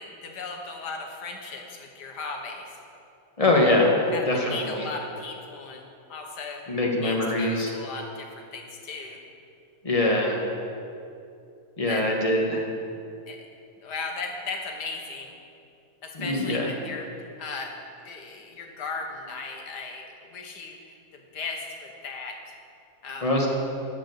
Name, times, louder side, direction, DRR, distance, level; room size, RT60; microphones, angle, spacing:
voice 1, 0.0-2.7 4.1-6.6 7.0-9.2 11.9-12.0 13.3-13.4 13.8-15.3 16.0-17.1 17.4-17.7 18.0-22.5 23.0-23.3, left 4 dB, 85° left, 2 dB, 1.8 m, -37 dB
voice 2, 3.4-3.9 4.3-4.9 6.7-7.7 9.8-10.4 11.8-12.6 16.1-16.7 23.2-23.5, left 1 dB, 20° left, -1 dB, 1.4 m, -23 dB
12.0 x 5.2 x 7.9 m, 2.6 s
omnidirectional pair, 1.7 m